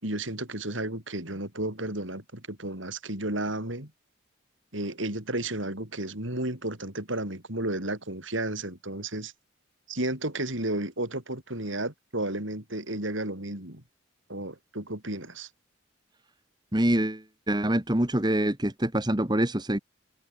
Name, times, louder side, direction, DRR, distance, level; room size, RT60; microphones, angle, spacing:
voice 1, 0.0-3.9 4.7-9.3 9.9-13.8 14.3-15.5, right 1 dB, 75° right, 6.6 m, -32 dB
voice 2, 16.7-19.8, right 1 dB, 20° right, 1.6 m, -25 dB
head